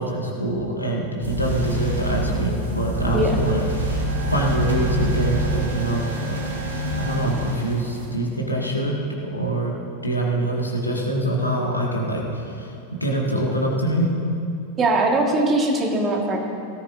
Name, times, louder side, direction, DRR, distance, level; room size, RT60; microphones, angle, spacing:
voice 1, 0.0-4.0 4.3-9.0 9.2-9.8 10.0-12.7 13.0-14.1, right 1 dB, 85° left, -2 dB, 1.9 m, -25 dB
sound 1, 1.2-8.1, equal, 70° right, 2.3 m, -26 dB
voice 2, 14.8-16.4, right 2 dB, 25° right, 1 dB, 1.7 m, -20 dB
18.0 x 14.0 x 2.7 m, 2.6 s
figure-of-eight pair, 90°, 0 cm